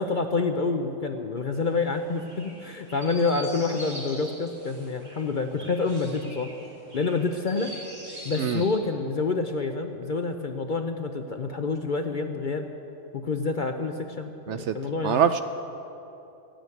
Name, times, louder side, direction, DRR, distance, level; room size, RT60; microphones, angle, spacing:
voice 1, 0.0-6.5 6.9-7.7 8.2-12.7 13.1-15.2, left 4 dB, 45° left, 5 dB, 0.7 m, -28 dB
Chirp tweet, 1.5-8.8, right 1 dB, 85° right, 4.5 m, -43 dB
voice 2, 15.0-15.4, right 8 dB, 65° right, 9 dB, 0.8 m, -24 dB
15.0 x 9.0 x 9.3 m, 2.9 s
omnidirectional pair, 1.5 m